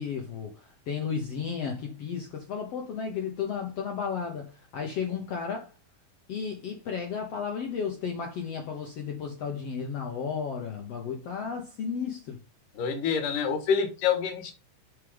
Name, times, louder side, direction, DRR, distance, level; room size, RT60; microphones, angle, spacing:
voice 1, 0.0-5.7 6.3-12.4, left 6 dB, 60° left, 1.9 m, -33 dB
voice 2, 12.8-14.5, left 6 dB, 85° left, 3.1 m, -27 dB
8.3 x 4.8 x 3.5 m
omnidirectional pair, 3.7 m